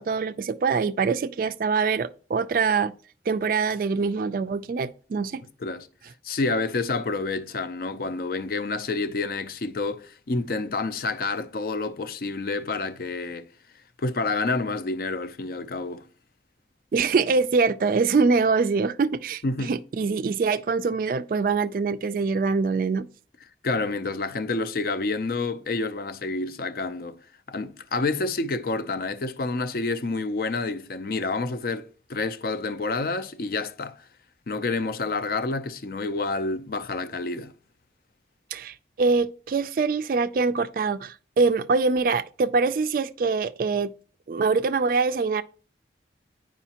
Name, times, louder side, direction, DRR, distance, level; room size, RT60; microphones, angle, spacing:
voice 1, 0.0-2.9 3.3-5.4 16.9-23.1 38.5-43.9 44.3-45.4, right 4 dB, 50° right, 0.3 m, -24 dB
voice 2, 6.2-13.5 14.0-16.1 19.4-19.7 23.6-27.2 27.5-34.0 34.5-37.5, left 3 dB, 55° left, 0.4 m, -28 dB
9.8 x 4.9 x 2.8 m
head